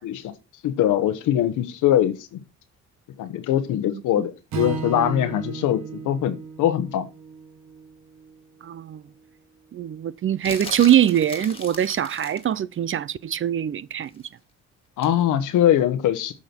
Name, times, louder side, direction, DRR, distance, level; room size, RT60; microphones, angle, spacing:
voice 1, 0.0-0.3 0.6-2.4 3.2-7.1 15.0-16.3, left 11 dB, 85° left, 1.1 m, -22 dB
Strum, 4.5-8.8, right 6 dB, 65° right, 1.3 m, -35 dB
voice 2, 8.6-9.0 9.7-14.1, right 10 dB, 45° right, 0.6 m, -22 dB
sound 1, 10.4-12.5 15.0-15.2, left 2 dB, 20° left, 2.1 m, -38 dB
8.3 x 6.4 x 4.4 m
cardioid pair, 90°, 30 cm